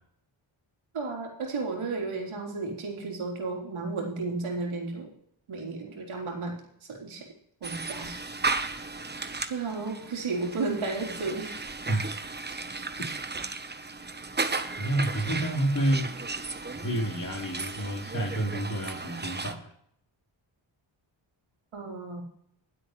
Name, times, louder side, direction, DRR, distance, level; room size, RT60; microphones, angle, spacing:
voice 1, 0.9-5.1 5.5-6.6 6.9-7.3 7.6-8.2 9.5-11.7 21.7-22.2, right 3 dB, 80° right, 0 dB, 3.8 m, -33 dB
sound 1, 7.6-19.5, right 3 dB, 20° right, 1.0 m, -35 dB
voice 2, 14.8-16.1 16.7-19.7, right 1 dB, 40° left, -1 dB, 4.3 m, -29 dB
21.5 x 8.2 x 3.2 m, 0.70 s
cardioid pair, 75°, 48 cm